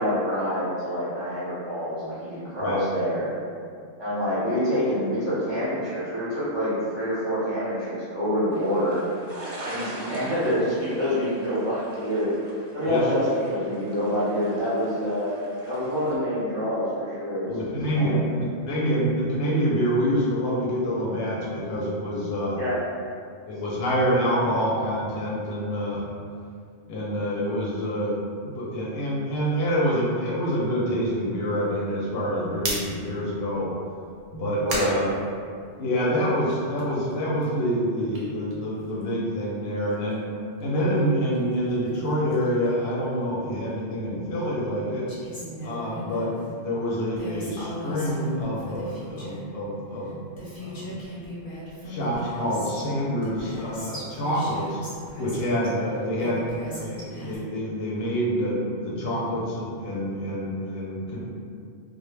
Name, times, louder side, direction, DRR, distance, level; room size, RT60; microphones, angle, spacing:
voice 1, 0.0-3.3 4.0-9.0 9.6-12.3 12.7-13.2 13.5-15.3 15.6-17.5 17.9-18.2 22.6-22.8 34.6-34.9, equal, 30° right, -12 dB, 0.6 m, -26 dB
sound 1, 8.5-16.2, right 1 dB, 90° right, 1.0 m, -42 dB
voice 2, 17.5-22.6 23.5-26.0 26.9-28.1 28.4-33.7 34.3-35.1 35.8-40.2 40.6-45.1 45.6-46.3 46.6-50.2 50.6-51.0 51.9-54.8 55.2-56.4 56.7-61.2, equal, 70° left, -5 dB, 0.7 m, -26 dB
sound 2, 32.4-36.0 36.4-39.3 39.6-43.7, right 2 dB, 65° right, 0.8 m, -39 dB
Female speech woman speaking, 45.1-46.3 47.2-49.5 50.1-50.2 50.4-52.9 53.2-55.7 56.2-57.4, equal, 30° left, 0.4 m, -38 dB
2.1 x 2.1 x 3.1 m, 2.2 s
omnidirectional pair, 1.2 m